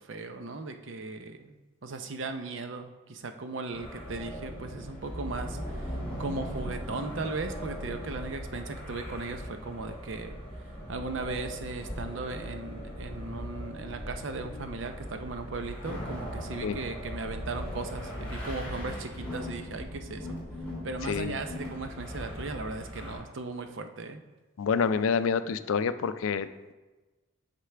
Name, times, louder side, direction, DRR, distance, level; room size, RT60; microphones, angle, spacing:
voice 1, 0.0-10.4 10.9-20.4 20.8-24.2, right 3 dB, 60° right, 7 dB, 0.6 m, -37 dB
sound 1, 3.7-23.2, equal, 5° left, 2.3 m, -39 dB
voice 2, 21.0-21.4 24.6-26.7, left 6 dB, 75° left, 12 dB, 0.4 m, -28 dB
8.1 x 5.9 x 3.3 m, 1.2 s
head